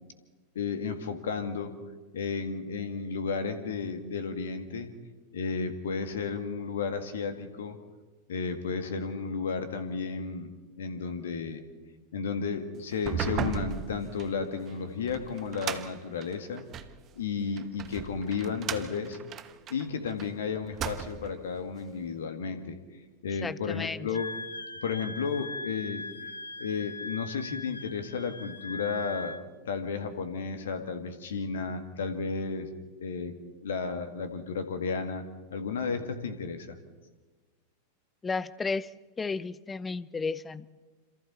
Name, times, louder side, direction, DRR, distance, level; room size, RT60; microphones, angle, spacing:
voice 1, 0.6-1.8 2.1-4.9 5.3-7.8 8.3-10.5 10.8-11.6 12.1-16.6 17.2-19.2 19.7-22.8 23.2-24.3 24.8-26.1 26.6-32.7 33.0-33.4 33.6-35.3 35.5-36.8, left 5 dB, 60° left, 9 dB, 2.0 m, -33 dB
sound 1, 12.9-17.0 17.6-20.3 20.6-21.4, right 8 dB, 30° right, 1.2 m, -36 dB
voice 2, 23.4-24.1 38.2-38.9 39.2-40.7, left 4 dB, 15° left, 18 dB, 0.7 m, -33 dB
Wind instrument woodwind instrument, 24.1-29.4, left 3 dB, 80° left, 1.2 m, -40 dB
27.5 x 27.0 x 4.2 m, 1.3 s
figure-of-eight pair, 90°, 0 cm